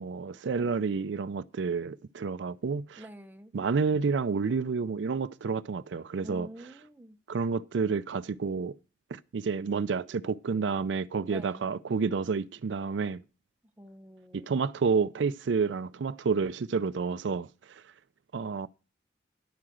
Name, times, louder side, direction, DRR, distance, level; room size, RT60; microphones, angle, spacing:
voice 1, 0.0-3.0 3.5-6.5 7.3-8.7 9.1-13.2 14.3-17.8 18.3-18.7, right 5 dB, 80° right, 0.4 m, -30 dB
voice 2, 3.0-3.5 6.2-7.2 11.3-11.7 13.8-14.6, equal, 10° right, 0.7 m, -47 dB
11.0 x 4.8 x 7.6 m
head